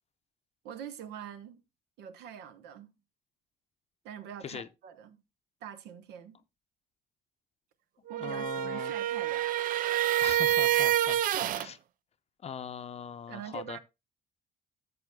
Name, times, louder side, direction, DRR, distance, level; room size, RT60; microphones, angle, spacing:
voice 1, 0.6-1.6 2.0-2.9 4.0-5.2 5.6-6.4 8.1-9.5 11.4-11.6 13.3-13.8, right 9 dB, 80° right, 1.1 m, -44 dB
sound 1, 8.1-11.7, right 13 dB, 55° right, 0.4 m, -27 dB
voice 2, 8.2-8.9 10.2-11.2 11.5-11.8 12.4-13.8, left 7 dB, 40° left, 0.6 m, -40 dB
13.0 x 7.0 x 2.3 m
cardioid pair, 110°, 17 cm